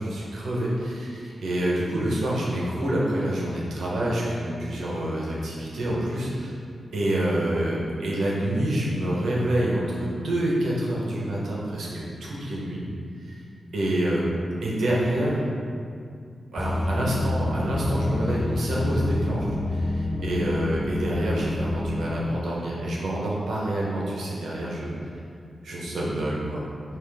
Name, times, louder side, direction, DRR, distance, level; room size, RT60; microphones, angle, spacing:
voice 1, 0.0-6.6 6.9-12.8 13.2-13.4 13.7-14.3 14.6-15.5 16.5-24.9 25.6-26.7, right 1 dB, 90° right, -5 dB, 0.9 m, -27 dB
sound 1, 16.6-22.4, left 2 dB, 10° left, 0.3 m, -27 dB
4.9 x 3.0 x 3.6 m, 2.3 s
wide cardioid pair, 100°, 0 cm